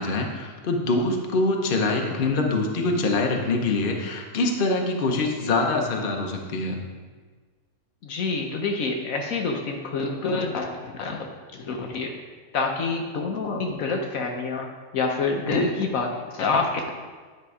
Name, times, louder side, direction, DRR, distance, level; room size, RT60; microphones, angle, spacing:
voice 1, 0.0-6.8, left 2 dB, 45° left, 2 dB, 0.9 m, -24 dB
voice 2, 8.0-11.3 11.6-12.1 12.5-16.8, left 3 dB, 70° left, 3 dB, 1.1 m, -27 dB
9.6 x 4.2 x 4.8 m, 1.5 s
omnidirectional pair, 1.6 m